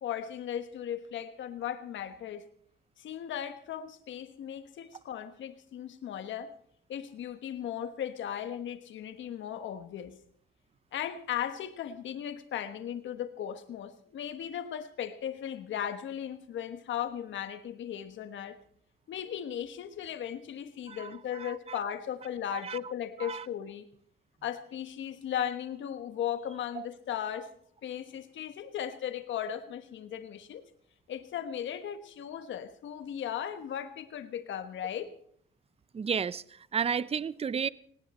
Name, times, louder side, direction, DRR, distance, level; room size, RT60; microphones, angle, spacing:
voice 1, 0.0-2.4 3.0-6.5 6.9-10.1 10.9-18.6 19.1-23.8 24.4-27.5 27.8-30.6 31.1-35.1, left 10 dB, 70° left, 10 dB, 1.3 m, -37 dB
voice 2, 20.9-21.9 22.5-22.8 23.2-23.4 26.7-26.9 35.9-37.7, right 6 dB, 30° right, 19 dB, 0.6 m, -33 dB
18.5 x 18.5 x 4.3 m, 0.62 s
cardioid pair, 90°, 20 cm